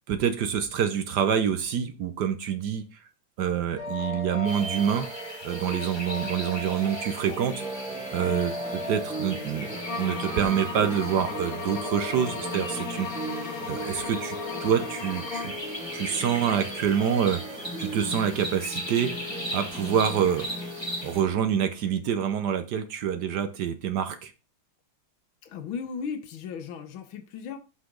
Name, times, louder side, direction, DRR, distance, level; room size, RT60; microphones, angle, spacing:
voice 1, 0.0-2.8 3.4-5.1 5.4-7.8 8.1-9.7 10.0-13.1 13.7-15.5 15.9-20.5 21.0-24.3, right 8 dB, 65° right, 1.2 m, -27 dB
sound 1, 3.8-21.9, right 1 dB, 5° right, 1.7 m, -37 dB
sound 2, 4.4-21.2, equal, 15° left, 1.5 m, -39 dB
sound 3, 9.9-15.6, left 4 dB, 35° left, 1.1 m, -37 dB
voice 2, 25.4-27.6, left 6 dB, 75° left, 1.7 m, -36 dB
7.7 x 5.8 x 3.8 m
omnidirectional pair, 2.2 m